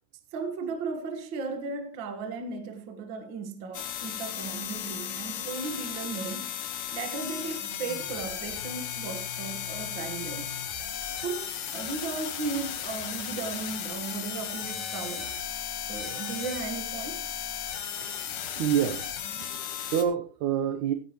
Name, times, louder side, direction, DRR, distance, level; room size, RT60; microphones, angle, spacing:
voice 1, 0.3-6.6 6.9-10.6 11.2-15.4 15.9-17.3, right 4 dB, 50° right, 1.4 m, -36 dB
sound 1, 3.7-20.0, left 9 dB, 65° left, 2.7 m, -35 dB
voice 2, 18.0-19.1 19.4-20.9, right 9 dB, 75° right, 1.8 m, -28 dB
16.0 x 10.0 x 3.1 m
omnidirectional pair, 4.4 m